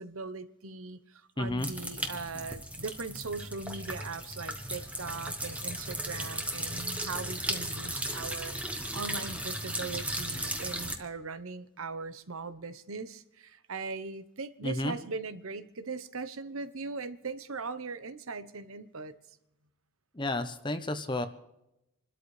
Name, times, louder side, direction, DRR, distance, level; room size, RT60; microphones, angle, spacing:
voice 1, 0.0-8.5 8.9-19.1, right 4 dB, 75° right, 1.0 m, -39 dB
voice 2, 1.4-1.7 14.6-14.9 20.1-21.3, left 1 dB, 20° left, 0.8 m, -31 dB
sound 1, 1.6-10.9, right 1 dB, 5° right, 1.3 m, -36 dB
27.5 x 13.0 x 3.3 m
head